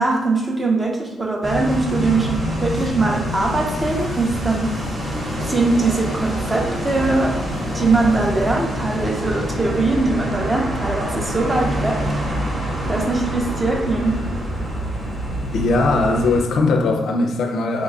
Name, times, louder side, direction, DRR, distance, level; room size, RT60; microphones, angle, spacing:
voice 1, 0.0-4.8 5.4-7.4 7.7-12.2 12.9-14.2, right 3 dB, 15° right, 0.4 m, -21 dB
sound 1, 1.4-16.4, equal, 35° right, 0.9 m, -26 dB
voice 2, 15.5-17.8, left 3 dB, 70° left, 0.3 m, -19 dB
3.0 x 2.2 x 3.6 m
cardioid pair, 135°, 0 cm